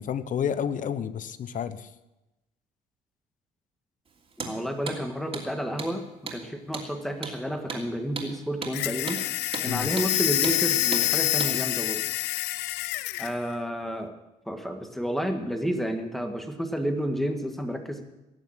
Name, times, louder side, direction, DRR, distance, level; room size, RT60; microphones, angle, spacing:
voice 1, 0.0-1.9 9.7-9.9, left 8 dB, 50° left, 13 dB, 0.9 m, -30 dB
Hammer, 4.3-4.5 4.9-5.0 5.3-5.5 5.8-5.9 6.3-6.4 6.7-6.9 7.2-7.4 7.7-7.8 8.2-8.3 8.6-8.8 9.1-9.2 9.5-9.7 10.0-10.1 10.4-10.6 10.9-11.1 11.4-11.5, right 5 dB, 35° right, 3.0 m, -34 dB
voice 2, 4.4-6.1 6.3-9.2 9.6-12.0 13.2-14.1 14.4-18.0, equal, ahead, 5 dB, 1.8 m, -30 dB
sound 1, 8.7-13.3, left 17 dB, 85° left, 0.5 m, -27 dB
18.5 x 7.2 x 7.5 m, 0.98 s
cardioid pair, 110°, 17 cm